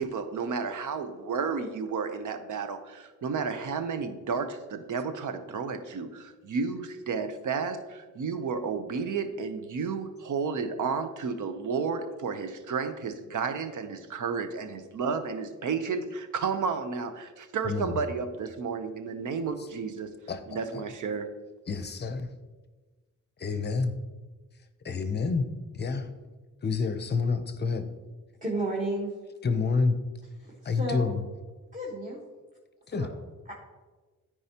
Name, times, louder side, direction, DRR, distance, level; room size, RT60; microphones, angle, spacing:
voice 1, 0.0-20.1 20.5-21.3, right 5 dB, 75° right, 8 dB, 0.8 m, -32 dB
voice 2, 17.6-18.0 20.3-20.4 20.7-20.8 21.7-22.3 23.4-24.0 24.8-25.5 25.7-26.1 26.6-27.8 29.4-29.9 30.6-31.2 32.9-33.1, left 4 dB, 35° left, 9 dB, 0.6 m, -28 dB
voice 3, 28.4-29.1 30.4-31.0 31.7-32.2 33.0-33.1 33.5-33.6, right 1 dB, 25° right, -4 dB, 1.3 m, -32 dB
13.0 x 4.8 x 2.9 m, 1.3 s
wide cardioid pair, 165°, 31 cm